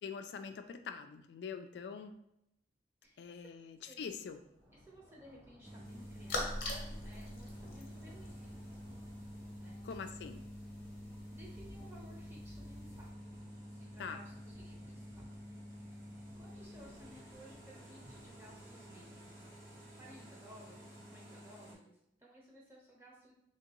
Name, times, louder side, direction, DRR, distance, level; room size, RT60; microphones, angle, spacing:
voice 1, 0.0-2.1 3.2-4.4 9.8-10.4 14.0-14.2, left 6 dB, 75° left, 8 dB, 0.3 m, -44 dB
voice 2, 3.0-3.5 3.8-4.1 4.7-8.8 9.6-9.8 11.3-13.1 13.7-15.4 16.3-19.4 20.0-23.3, equal, 15° right, -4 dB, 0.9 m, -58 dB
sound 1, 3.8-21.0, equal, 70° right, 1.3 m, -62 dB
sound 2, 5.6-21.7, equal, 45° right, 1.4 m, -50 dB
sound 3, 5.8-13.1, left 2 dB, 55° left, 0.8 m, -45 dB
3.5 x 2.9 x 3.0 m, 0.79 s
head